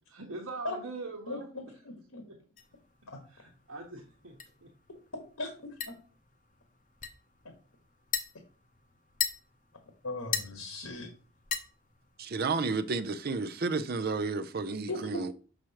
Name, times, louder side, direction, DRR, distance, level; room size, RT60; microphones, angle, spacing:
voice 1, 0.1-1.5 2.3-2.4 3.3-4.7, right 3 dB, 75° right, 1.3 m, -42 dB
voice 2, 1.3-2.2 5.1-5.7 10.0-11.1 14.9-15.2, left 2 dB, 80° left, 1.3 m, -38 dB
sound 1, 2.6-12.3, left 8 dB, 35° left, 0.7 m, -41 dB
voice 3, 12.2-15.3, right 4 dB, 45° right, 0.5 m, -32 dB
6.3 x 6.0 x 2.9 m
head